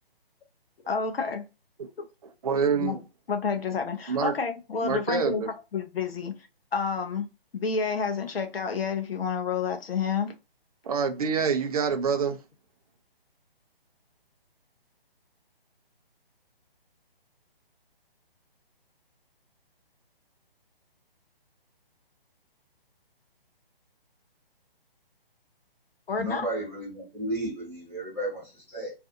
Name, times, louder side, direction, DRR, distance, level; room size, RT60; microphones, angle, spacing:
voice 1, 0.9-1.4 2.0-2.1 2.7-3.0 3.3-5.4 5.7-6.3 6.7-7.3 7.5-10.3 26.1-26.5, left 5 dB, 75° left, 0.6 m, -29 dB
voice 2, 2.2-3.0 4.1-4.3 4.8-5.5 10.8-12.4, right 6 dB, 40° right, 0.5 m, -26 dB
voice 3, 26.1-28.9, right 1 dB, 5° left, 1.1 m, -33 dB
2.5 x 2.3 x 2.5 m
figure-of-eight pair, 145°, 30 cm